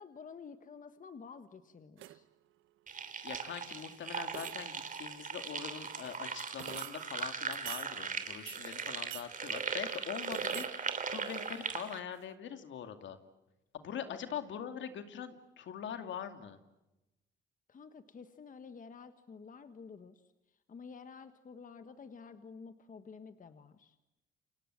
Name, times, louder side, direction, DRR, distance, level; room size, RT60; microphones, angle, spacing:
voice 1, 0.0-2.3 14.1-14.2 17.7-23.9, left 5 dB, 40° left, 9 dB, 1.5 m, -51 dB
sound 1, 2.0-2.3 3.8-3.9 4.2-4.9 5.8-7.1 7.5-7.9 8.5-9.3 9.7-10.7 11.0-11.8 12.2-12.3, right 14 dB, 90° right, 1.0 m, -47 dB
sound 2, 2.9-12.0, right 5 dB, 40° right, 3.0 m, -39 dB
voice 2, 3.2-13.2 13.7-16.6, left 8 dB, 70° left, 8 dB, 2.5 m, -43 dB
29.0 x 26.0 x 7.7 m, 0.98 s
cardioid pair, 90°, 20 cm